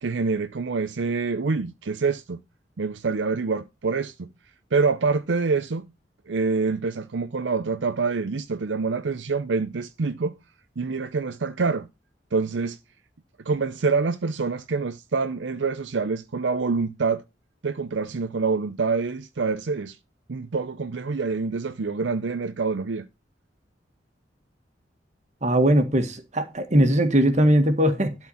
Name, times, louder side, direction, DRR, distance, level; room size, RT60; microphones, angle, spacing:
voice 1, 0.0-2.4 2.8-4.3 4.7-5.9 6.3-10.3 10.8-11.9 12.3-12.8 13.5-17.2 17.6-20.0 20.3-23.1, right 4 dB, 75° right, 0.6 m, -26 dB
voice 2, 25.4-28.2, right 1 dB, 40° right, 1.8 m, -20 dB
12.0 x 4.5 x 5.6 m
head